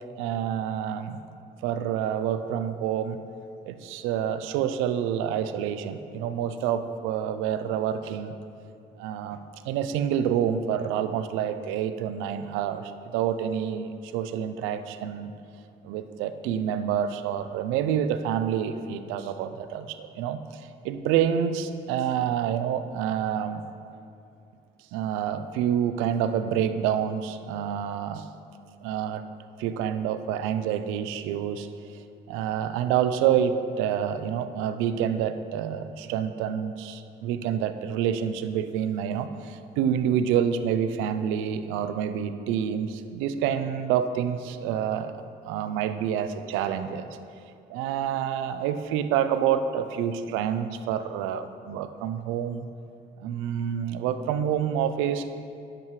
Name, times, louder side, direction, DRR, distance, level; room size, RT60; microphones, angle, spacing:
voice 1, 0.2-1.2 1.6-3.2 3.7-8.3 9.0-15.3 15.8-23.6 24.9-28.3 28.8-29.2 29.6-31.7 31.9-47.1 47.7-52.7 53.2-55.3, right 9 dB, 85° right, 11 dB, 0.5 m, -28 dB
10.5 x 7.6 x 3.2 m, 2.6 s
hypercardioid pair, 55°, 20 cm